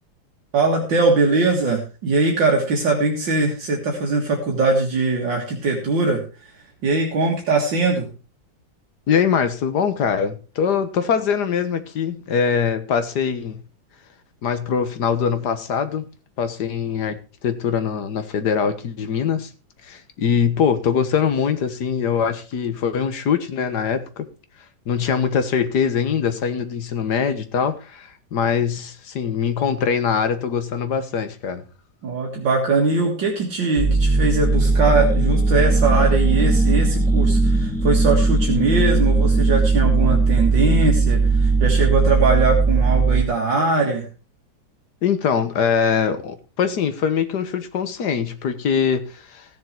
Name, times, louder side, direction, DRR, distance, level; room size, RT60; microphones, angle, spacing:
voice 1, 0.5-8.1 32.0-44.1, right 3 dB, 65° right, 2.6 m, -21 dB
voice 2, 9.1-13.6 14.4-16.1 16.4-19.5 19.8-24.3 24.9-31.6 45.0-49.5, left 7 dB, 60° left, 1.7 m, -22 dB
sound 1, 33.8-43.2, right 3 dB, 5° left, 0.7 m, -18 dB
15.5 x 7.4 x 4.6 m
omnidirectional pair, 2.1 m